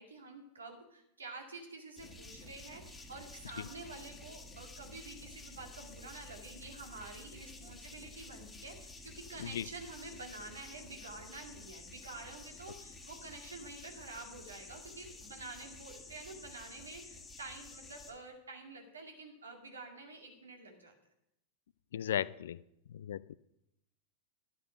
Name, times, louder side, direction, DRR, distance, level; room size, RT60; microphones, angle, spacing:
voice 1, 0.0-20.9, right 3 dB, 75° right, 3 dB, 2.2 m, -49 dB
sound 1, 2.0-18.1, left 2 dB, 10° left, 1.8 m, -51 dB
voice 2, 21.9-22.6 22.9-23.3, left 10 dB, 60° left, 20 dB, 0.3 m, -36 dB
11.5 x 8.7 x 5.9 m, 0.82 s
figure-of-eight pair, 90°, 0 cm